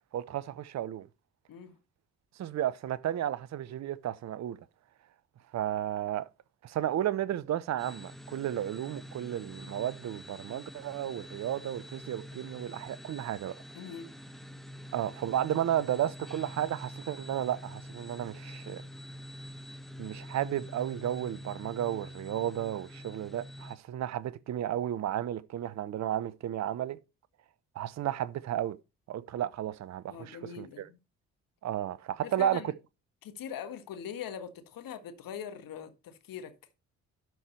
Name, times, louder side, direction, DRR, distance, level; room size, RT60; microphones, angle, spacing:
voice 1, 0.1-1.1 2.4-4.6 5.5-6.3 6.6-13.6 14.9-18.8 20.0-27.0 27.7-28.8 29.1-30.9 31.6-32.6, right 11 dB, 40° right, 0.8 m, -33 dB
sound 1, 7.8-23.8, equal, ahead, 0.9 m, -46 dB
voice 2, 13.7-14.2 30.1-31.0 32.2-32.7 33.2-36.5, left 8 dB, 55° left, 1.6 m, -42 dB
12.0 x 4.6 x 4.3 m
figure-of-eight pair, 45°, 40 cm